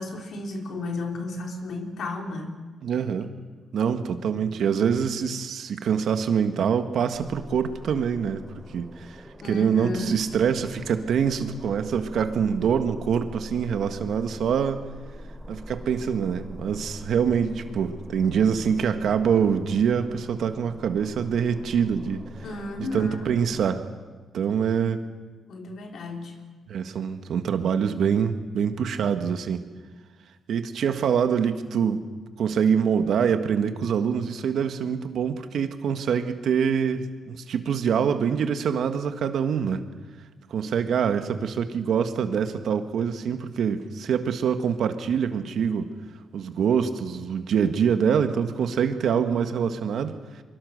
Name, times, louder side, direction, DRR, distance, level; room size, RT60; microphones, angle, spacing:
voice 1, 0.0-2.6 9.4-10.3 22.4-23.3 25.5-26.4, left 2 dB, 75° left, 2 dB, 3.7 m, -33 dB
voice 2, 2.8-3.3 3.7-8.4 8.7-9.2 9.5-14.8 15.5-22.2 22.9-23.8 24.3-25.0 26.7-29.6 30.5-32.0 32.4-39.8 40.5-45.9 46.3-50.1, right 7 dB, 75° right, 8 dB, 1.7 m, -25 dB
sound 1, 7.1-23.7, equal, ahead, 3.9 m, -43 dB
24.0 x 22.0 x 6.6 m, 1.4 s
cardioid pair, 75°, 0 cm